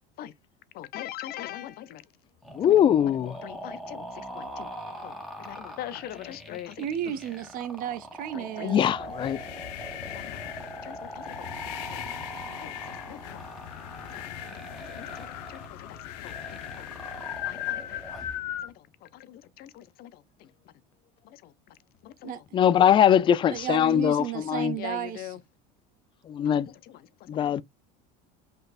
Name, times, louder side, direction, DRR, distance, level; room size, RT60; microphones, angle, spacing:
voice 1, 0.7-2.0 2.6-2.9 3.4-4.0 4.3-4.7 5.0-7.1 8.3-9.3 10.1-10.4 10.8-12.0 12.6-12.8 13.1-13.4 14.1-14.2 14.5-16.9 17.5-18.0 18.6-20.2 21.2-21.5 22.0-22.4 23.2-23.3 24.8-25.4 26.4-27.6, left 13 dB, 50° left, 0.7 m, -43 dB
sound 1, 2.4-18.4, equal, ahead, 1.7 m, -42 dB
voice 2, 2.6-3.4 8.6-9.4 22.5-24.7 26.3-26.7 27.3-27.6, left 9 dB, 25° left, 0.3 m, -21 dB
voice 3, 6.8-8.9 22.2-22.4 23.5-25.3, right 10 dB, 45° right, 0.9 m, -33 dB
sound 2, 8.9-18.7, left 12 dB, 80° left, 0.9 m, -38 dB
5.3 x 4.0 x 2.4 m
supercardioid pair, 120°, 20 cm